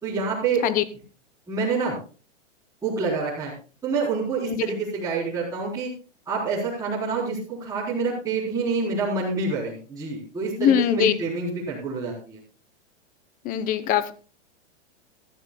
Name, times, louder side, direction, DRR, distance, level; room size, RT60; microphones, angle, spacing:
voice 1, 0.0-0.6 1.5-1.9 2.8-3.5 3.8-5.9 6.3-12.4, right 4 dB, 10° right, -8 dB, 3.9 m, -27 dB
voice 2, 10.6-11.1 13.4-14.1, left 10 dB, 25° left, 15 dB, 0.8 m, -21 dB
17.0 x 13.5 x 2.3 m, 0.36 s
hypercardioid pair, 145°, 36 cm